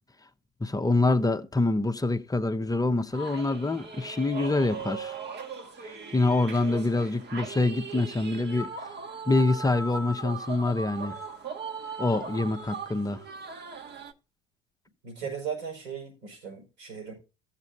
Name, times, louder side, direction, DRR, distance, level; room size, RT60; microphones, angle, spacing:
voice 1, 0.6-5.2 6.1-8.7 9.3-11.2 12.0-13.2, left 2 dB, 10° left, 0.8 m, -26 dB
sound 1, 3.1-14.1, right 4 dB, 35° right, 1.2 m, -39 dB
voice 2, 15.0-17.1, right 7 dB, 90° right, 5.5 m, -37 dB
15.0 x 7.5 x 2.7 m
hypercardioid pair, 70°, 31 cm